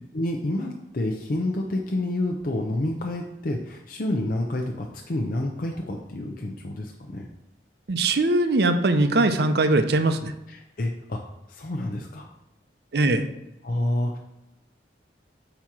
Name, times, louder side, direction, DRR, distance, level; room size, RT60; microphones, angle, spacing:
voice 1, 0.1-7.3 10.5-11.2 11.5-12.3 13.6-14.2, left 1 dB, 50° left, 1 dB, 0.6 m, -28 dB
voice 2, 7.9-10.3 12.9-13.3, right 2 dB, 60° right, 9 dB, 0.6 m, -21 dB
8.4 x 3.0 x 6.0 m, 0.93 s
head